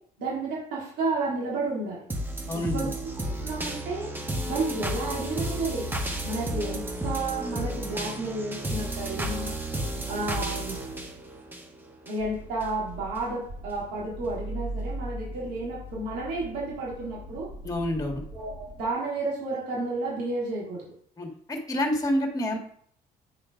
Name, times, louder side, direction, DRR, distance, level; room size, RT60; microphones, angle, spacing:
voice 1, 0.2-2.0 2.5-2.9 3.4-4.1 4.4-5.9 6.2-9.5 10.1-10.8 12.0-17.5 18.3-20.8, right 3 dB, 85° right, -6 dB, 3.8 m, -31 dB
sound 1, 2.1-12.1 12.6-12.7, right 1 dB, 10° right, 1.2 m, -32 dB
voice 2, 2.5-2.9 17.6-18.2 21.2-22.6, left 1 dB, 20° left, 3 dB, 1.8 m, -28 dB
sound 2, 12.2-18.9, right 1 dB, 40° right, 1.3 m, -40 dB
8.7 x 4.3 x 5.0 m, 0.62 s
cardioid pair, 110°, 17 cm